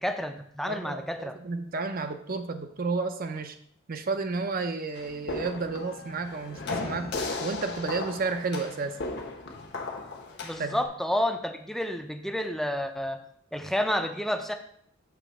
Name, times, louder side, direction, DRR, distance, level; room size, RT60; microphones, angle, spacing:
voice 1, 0.0-1.4 10.4-13.2 13.5-14.5, left 1 dB, ahead, 6 dB, 0.5 m, -30 dB
voice 2, 0.7-3.6 3.9-9.0 10.6-10.8, right 4 dB, 45° right, 8 dB, 0.6 m, -32 dB
sound 1, 4.9-10.8, left 3 dB, 60° left, 1.1 m, -36 dB
7.1 x 3.3 x 6.1 m, 0.66 s
head